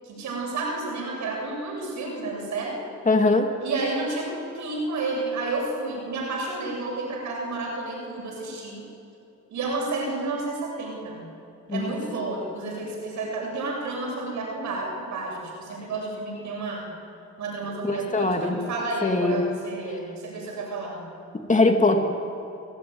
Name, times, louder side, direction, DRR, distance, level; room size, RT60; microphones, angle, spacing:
voice 1, 0.0-2.8 3.6-8.8 9.5-11.2 11.7-16.9 17.4-21.0, right 3 dB, 70° right, 0 dB, 7.8 m, -31 dB
voice 2, 3.1-3.5 11.7-11.9 17.8-18.6 19.0-19.4 21.5-22.0, left 2 dB, 25° left, 4 dB, 2.4 m, -21 dB
27.0 x 16.0 x 9.5 m, 2.8 s
cardioid pair, 90°, 30 cm